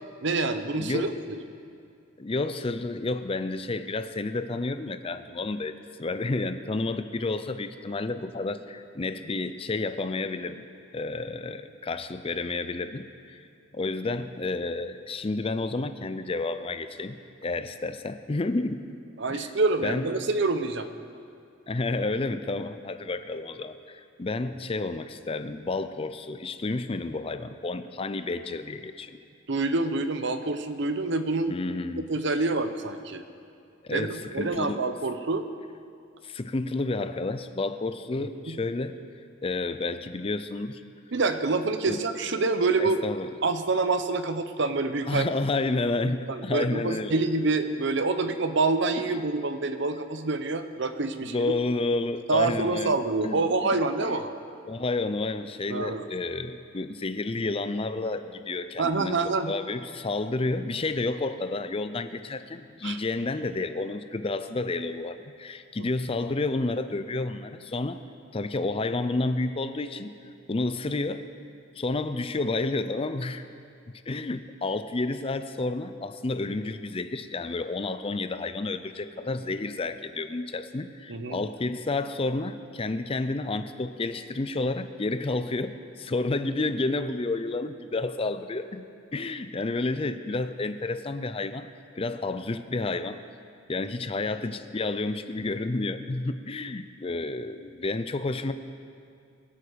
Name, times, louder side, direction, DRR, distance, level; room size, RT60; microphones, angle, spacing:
voice 1, 0.2-1.4 19.2-20.9 29.5-31.6 32.0-33.2 33.9-35.4 38.5-38.6 41.1-43.0 43.4-45.2 46.3-51.5 52.3-54.3 55.7-56.0 58.8-59.5 62.8-63.0 81.1-81.4, right 3 dB, 60° right, 9 dB, 0.8 m, -27 dB
voice 2, 0.8-1.1 2.2-10.6 10.9-13.4 13.7-18.8 19.3-19.5 19.8-20.1 21.7-29.2 31.5-32.0 32.4-32.5 33.8-34.8 36.2-39.0 39.4-40.8 41.8-42.0 42.8-43.3 45.1-47.1 51.2-52.9 53.2-54.1 54.7-68.0 68.3-70.1 70.5-71.3 71.8-73.4 74.1-88.9 89.1-91.7 91.9-93.2 93.7-98.5, left 2 dB, 30° left, 10 dB, 0.5 m, -30 dB
23.0 x 8.6 x 5.1 m, 2.4 s
head